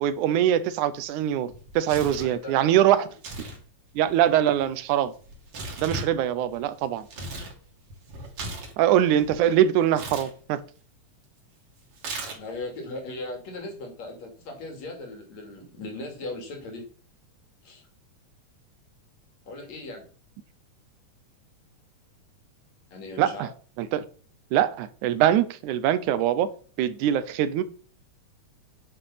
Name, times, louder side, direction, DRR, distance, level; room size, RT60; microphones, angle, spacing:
voice 1, 0.0-3.1 4.0-5.1 5.8-7.1 8.8-10.6 23.2-23.5 23.8-24.0 24.5-26.5 26.8-27.6, right 11 dB, 85° right, 2.3 m, -23 dB
Tearing, 1.5-2.3 3.1-3.6 3.9-7.5 7.9-9.4 9.9-10.3 12.0-12.6, right 2 dB, 50° right, 3.0 m, -37 dB
voice 2, 2.2-3.1 4.2-4.4 12.4-16.9 17.6-17.8 19.5-20.1 22.9-23.5, left 2 dB, 65° left, 4.0 m, -38 dB
9.8 x 6.9 x 5.7 m
omnidirectional pair, 3.4 m